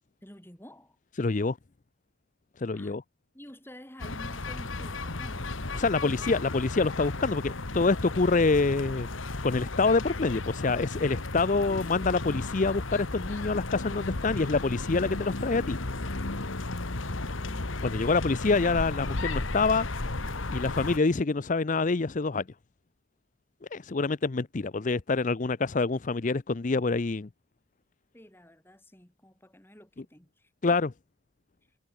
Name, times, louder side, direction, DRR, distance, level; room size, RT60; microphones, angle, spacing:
voice 1, 0.2-1.0 2.7-2.9 3.3-6.3 28.1-30.8, equal, 10° left, 3.9 m, -51 dB
voice 2, 1.2-1.6 2.6-3.0 5.7-9.1 9.4-15.8 17.8-19.9 20.2-22.4 23.7-27.3 30.6-30.9, left 3 dB, 40° left, 0.5 m, -26 dB
sound 1, 4.0-21.0, left 2 dB, 75° left, 1.7 m, -34 dB
head